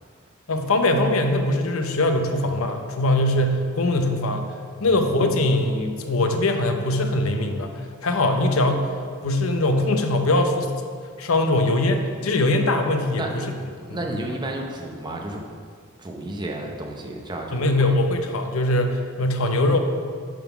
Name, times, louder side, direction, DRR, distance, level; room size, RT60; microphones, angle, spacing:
voice 1, 0.5-4.5 4.8-8.9 9.2-10.7 11.2-13.5 13.9-14.0 17.5-19.8, left 1 dB, 70° left, 5 dB, 0.7 m, -22 dB
voice 2, 13.9-15.4 16.0-17.9, right 1 dB, 20° right, 1 dB, 0.7 m, -32 dB
9.0 x 3.9 x 5.9 m, 2.1 s
head